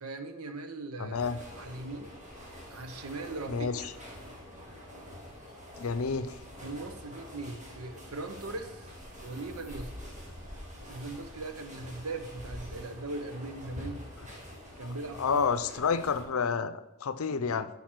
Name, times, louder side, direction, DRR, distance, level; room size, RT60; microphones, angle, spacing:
voice 1, 0.0-2.2 2.7-3.9 6.6-8.9 9.2-9.9 10.9-14.1 14.8-15.8, right 2 dB, 90° right, 8 dB, 0.9 m, -40 dB
voice 2, 1.0-1.4 3.5-3.8 5.8-6.4 15.2-17.7, left 5 dB, 80° left, 13 dB, 0.6 m, -29 dB
sound 1, 1.1-16.2, equal, 35° right, 2.7 m, -46 dB
8.7 x 5.7 x 6.1 m, 0.93 s
head